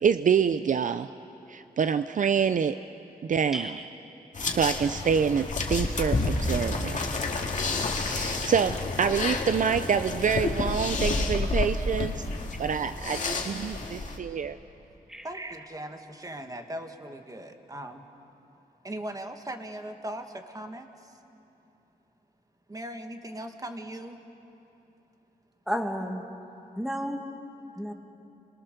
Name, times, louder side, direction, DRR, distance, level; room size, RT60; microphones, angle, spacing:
voice 1, 0.0-1.1 1.5-2.8 3.2-3.8 4.4-7.1 8.0-12.2 12.6-14.6, right 7 dB, 55° right, 11 dB, 0.5 m, -26 dB
voice 2, 3.5-3.8 15.1-15.3 25.7-26.2 26.8-27.2 27.8-27.9, equal, 5° right, 3 dB, 2.0 m, -31 dB
sound 1, 4.3-14.2, left 3 dB, 50° left, 2.2 m, -30 dB
voice 3, 15.2-18.0 18.8-21.2 22.7-24.2, right 1 dB, 20° right, 5 dB, 1.7 m, -39 dB
29.5 x 22.5 x 6.8 m, 3.0 s
wide cardioid pair, 115°, 16 cm